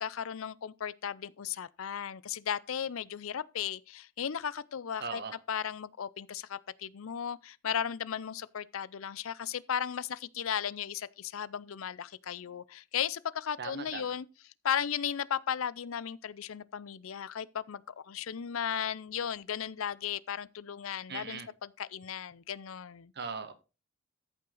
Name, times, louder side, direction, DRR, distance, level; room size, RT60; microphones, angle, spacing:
voice 1, 0.0-5.2 5.5-14.2 14.6-21.4 21.8-23.1, left 8 dB, 85° left, 0.5 m, -35 dB
voice 2, 5.0-5.4 13.6-14.1 21.1-21.5 23.1-23.5, right 5 dB, 55° right, 1.5 m, -39 dB
14.0 x 5.7 x 3.9 m
head